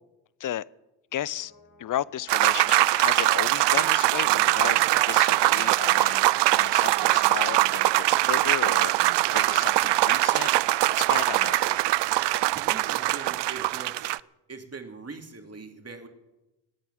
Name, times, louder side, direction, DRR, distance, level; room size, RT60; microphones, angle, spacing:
Brass instrument, 1.1-8.0 8.2-8.3, left 2 dB, 65° left, 6.3 m, -58 dB
voice 1, 1.1-1.5 1.8-8.9 9.3-10.5 11.0-11.8, left 11 dB, 40° left, 23 dB, 0.6 m, -34 dB
sound 1, 2.3-14.2, right 17 dB, 60° right, 0.5 m, -22 dB
voice 2, 12.5-14.2 14.5-16.1, right 4 dB, 30° right, 4 dB, 2.8 m, -42 dB
19.0 x 8.9 x 7.7 m, 1.0 s
hypercardioid pair, 45°, 48 cm